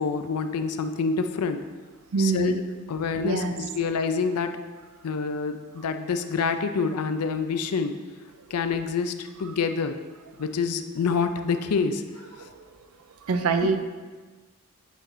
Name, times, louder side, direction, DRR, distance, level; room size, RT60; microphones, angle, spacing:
voice 1, 0.0-1.6 2.2-2.5 2.9-4.6 5.0-7.9 8.5-10.0 10.4-12.0 13.6-13.7, left 5 dB, 85° left, 8 dB, 0.4 m, -27 dB
voice 2, 2.1-2.6 3.2-3.5 8.5-8.6 9.4-9.5 12.2-12.5 13.3-13.8, right 4 dB, 65° right, 8 dB, 0.5 m, -25 dB
8.2 x 3.7 x 3.9 m, 1.4 s
head